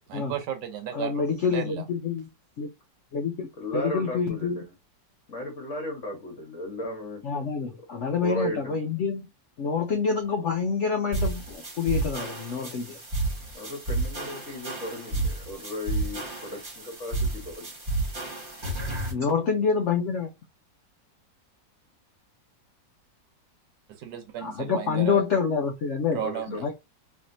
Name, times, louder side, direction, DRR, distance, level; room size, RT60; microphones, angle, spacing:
voice 1, 0.1-1.8 24.0-25.2 26.1-26.6, right 10 dB, 75° right, 1.4 m, -34 dB
voice 2, 0.9-2.3 2.6-2.7 3.1-3.5 3.7-4.6 7.3-9.3 9.6-13.0 19.1-20.3 24.4-26.2 26.5-26.7, left 5 dB, 75° left, 0.6 m, -27 dB
voice 3, 3.6-4.7 5.3-7.2 7.6-7.8 8.2-8.8 13.5-17.7 26.1-26.7, left 1 dB, 45° left, 1.3 m, -35 dB
sound 1, 11.1-19.1, right 2 dB, 30° right, 1.2 m, -31 dB
3.3 x 2.8 x 2.6 m
omnidirectional pair, 2.0 m